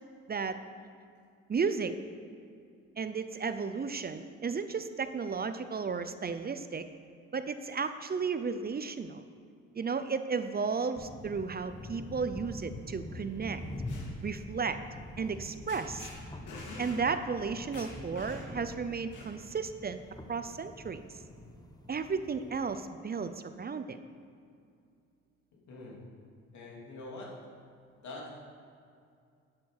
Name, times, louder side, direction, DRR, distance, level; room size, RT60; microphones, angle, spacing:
voice 1, 1.5-2.0 3.0-6.9 7.3-9.2 9.8-13.6 14.2-14.8 15.2-16.1 16.8-20.0 20.3-21.0 21.9-24.0, right 5 dB, 30° right, 10 dB, 0.6 m, -34 dB
sound 1, 11.0-22.7, left 1 dB, 15° left, 1.1 m, -45 dB
sound 2, 13.5-14.1 15.3-15.4 15.7-16.1 16.5-17.0 17.4-17.5 17.7-18.6 19.1-19.6, left 3 dB, 90° left, 2.4 m, -47 dB
voice 2, 25.5-26.1 26.5-27.4 28.0-28.3, left 2 dB, 70° left, -2 dB, 3.1 m, -44 dB
9.6 x 8.9 x 6.5 m, 2.3 s
cardioid pair, 90°, 30 cm